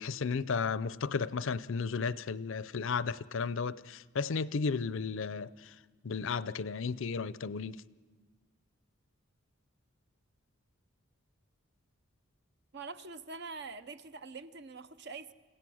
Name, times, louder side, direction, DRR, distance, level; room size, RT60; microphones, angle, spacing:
voice 1, 0.0-5.7 6.0-7.8, left 5 dB, 65° left, 0.5 m, -34 dB
voice 2, 12.7-15.3, right 4 dB, 55° right, 0.7 m, -44 dB
29.0 x 16.5 x 6.3 m
head